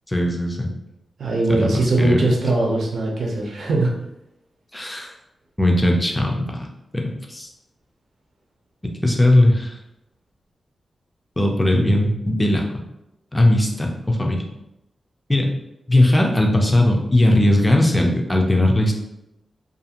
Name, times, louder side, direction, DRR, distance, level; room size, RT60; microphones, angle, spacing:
voice 1, 0.1-0.7 1.5-2.3 4.7-5.1 5.6-6.5 6.9-7.5 9.0-9.7 11.4-12.6 13.3-14.4 15.3-15.5 15.9-18.9, left 1 dB, 10° left, 1 dB, 0.4 m, -18 dB
voice 2, 1.2-3.9, right 2 dB, 75° right, -1 dB, 0.6 m, -20 dB
2.5 x 2.4 x 2.8 m, 0.88 s
wide cardioid pair, 140°, 0 cm